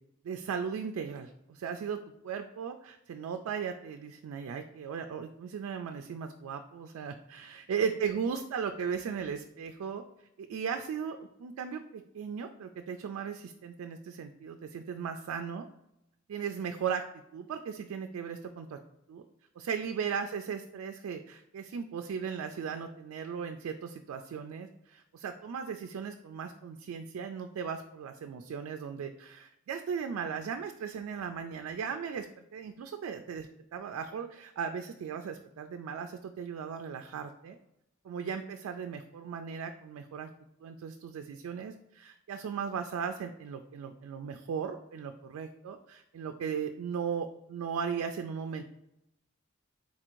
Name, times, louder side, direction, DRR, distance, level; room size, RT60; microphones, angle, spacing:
voice 1, 0.2-2.0 2.2-10.0 10.4-15.7 16.3-17.0 17.3-18.8 19.1-19.2 19.6-37.6 38.0-40.3 40.6-48.6, right 6 dB, 85° right, 6 dB, 0.3 m, -37 dB
4.0 x 2.5 x 4.4 m, 0.84 s
head